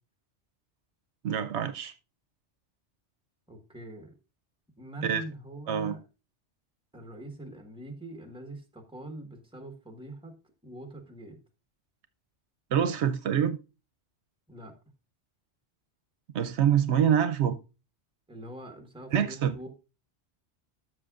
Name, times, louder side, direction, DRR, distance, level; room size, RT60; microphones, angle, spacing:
voice 1, 1.2-1.9 5.0-5.2 5.7-6.0 12.7-13.6 16.3-17.5 19.1-19.5, right 9 dB, 80° right, 0.9 m, -25 dB
voice 2, 3.5-4.2 4.8-6.0 6.9-10.4 10.6-11.4 14.5-14.7 18.3-19.7, right 1 dB, 5° right, 1.3 m, -43 dB
13.0 x 6.3 x 2.4 m
omnidirectional pair, 1.1 m